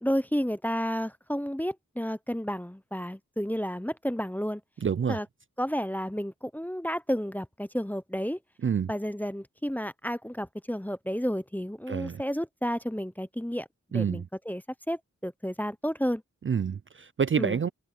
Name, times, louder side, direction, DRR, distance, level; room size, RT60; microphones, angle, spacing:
voice 1, 0.0-4.6 5.1-5.3 5.6-8.4 8.9-14.6 14.9-16.2 17.4-17.6, equal, 5° left, 0.6 m, -31 dB
voice 2, 4.8-5.2 8.6-8.9 11.9-12.2 13.9-14.3 16.4-17.7, right 7 dB, 40° right, 0.4 m, -27 dB
wide cardioid pair, 90°, 31 cm